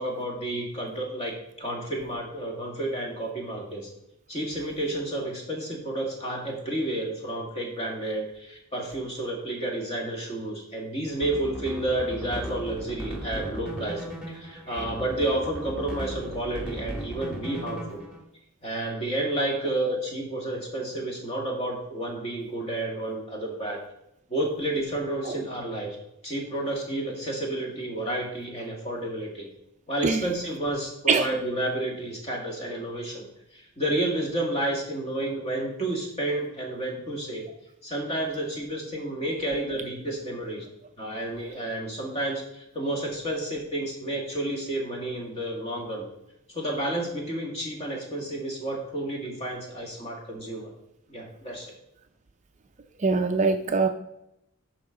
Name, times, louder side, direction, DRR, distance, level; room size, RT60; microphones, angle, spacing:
voice 1, 0.0-3.9 4.3-18.1 18.6-23.8 24.3-26.0 26.2-29.5 29.9-33.3 33.5-37.4 37.8-40.7 41.0-46.0 46.5-50.7 51.1-51.7, right 1 dB, 30° left, 0 dB, 1.9 m, -31 dB
sound 1, 11.1-18.2, right 1 dB, 5° right, 1.5 m, -37 dB
voice 2, 53.0-53.9, right 4 dB, 35° right, 6 dB, 0.5 m, -23 dB
11.5 x 4.8 x 3.8 m, 0.81 s
head